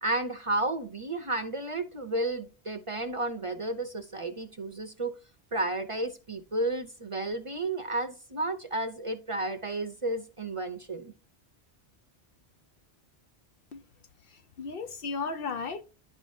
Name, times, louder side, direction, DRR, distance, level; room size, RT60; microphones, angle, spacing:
voice 1, 0.0-5.1 5.5-11.1, right 2 dB, 35° right, 0.8 m, -32 dB
voice 2, 14.3-15.8, left 4 dB, 60° left, 0.9 m, -35 dB
10.5 x 4.8 x 2.7 m
omnidirectional pair, 1.1 m